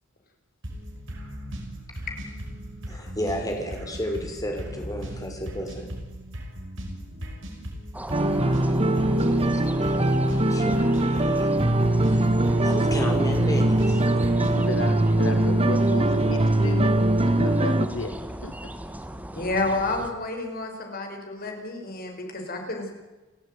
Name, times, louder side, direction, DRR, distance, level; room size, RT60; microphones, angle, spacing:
sound 1, 0.6-14.6, equal, 65° right, 5.9 m, -38 dB
voice 1, 2.9-5.9 9.3-10.2 10.5-11.5 12.1-12.3 12.6-14.0, equal, 20° left, 5.6 m, -32 dB
sound 2, 7.9-20.1, right 1 dB, 10° right, 1.7 m, -37 dB
sound 3, 8.1-17.9, right 1 dB, 30° right, 1.5 m, -22 dB
voice 2, 14.1-17.0 17.2-18.1 18.4-18.7, left 2 dB, 75° left, 1.9 m, -34 dB
voice 3, 19.3-22.9, left 2 dB, 50° left, 5.9 m, -30 dB
30.0 x 14.5 x 9.5 m
head